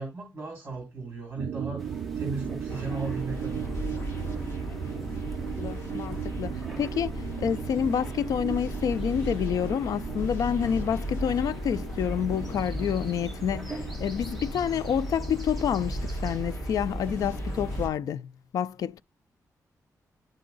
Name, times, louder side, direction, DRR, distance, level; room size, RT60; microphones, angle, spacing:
voice 1, 0.0-3.7, right 3 dB, 30° right, 2.4 m, -36 dB
sound 1, 1.4-18.1, right 9 dB, 60° right, 0.4 m, -38 dB
sound 2, 1.8-17.9, right 1 dB, ahead, 1.1 m, -39 dB
sound 3, 2.7-17.9, equal, 40° left, 2.8 m, -37 dB
voice 2, 4.7-5.3 5.6-19.0, left 8 dB, 70° left, 0.4 m, -29 dB
11.0 x 3.8 x 3.9 m
wide cardioid pair, 175°, 6 cm